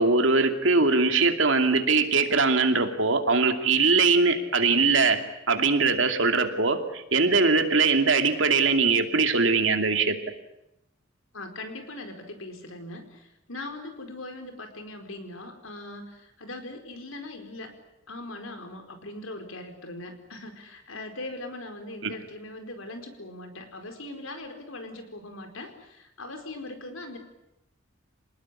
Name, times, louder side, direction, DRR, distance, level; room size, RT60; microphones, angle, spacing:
voice 1, 0.0-5.2 5.5-10.2 22.0-22.1, right 4 dB, 70° right, 6 dB, 2.7 m, -21 dB
voice 2, 11.3-17.8 18.1-27.2, left 2 dB, 85° left, 6 dB, 4.5 m, -40 dB
27.0 x 19.5 x 9.9 m, 0.87 s
head